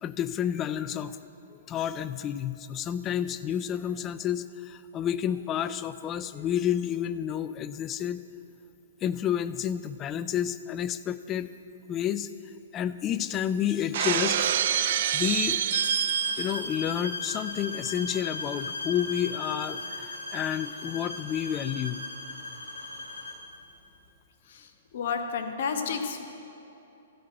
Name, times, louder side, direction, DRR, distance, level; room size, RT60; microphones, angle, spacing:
voice 1, 0.0-1.2 1.7-8.2 9.0-11.5 11.9-12.3 12.7-14.5 14.8-15.6 16.4-22.0, left 10 dB, 25° left, 14 dB, 0.4 m, -30 dB
Shatter, 13.9-16.7, right 10 dB, 60° right, 0.4 m, -26 dB
sound 1, 15.7-23.5, left 3 dB, 80° left, 1.5 m, -37 dB
voice 2, 24.5-26.3, left 5 dB, 60° left, 6 dB, 1.1 m, -31 dB
13.5 x 4.6 x 8.5 m, 2.9 s
hypercardioid pair, 120°, 0 cm